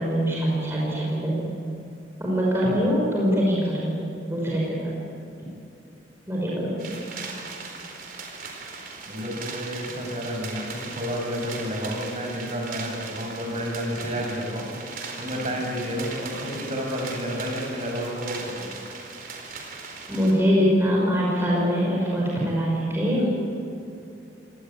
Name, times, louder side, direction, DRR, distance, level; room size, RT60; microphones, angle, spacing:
voice 1, 0.0-1.5 2.2-4.9 6.3-6.8 20.1-23.3, equal, 15° right, -4 dB, 5.6 m, -23 dB
sound 1, 6.8-20.3, right 4 dB, 50° right, 4.4 m, -38 dB
voice 2, 9.1-14.7 15.2-18.7, equal, 35° right, 0 dB, 7.0 m, -30 dB
26.5 x 19.5 x 8.9 m, 2.6 s
head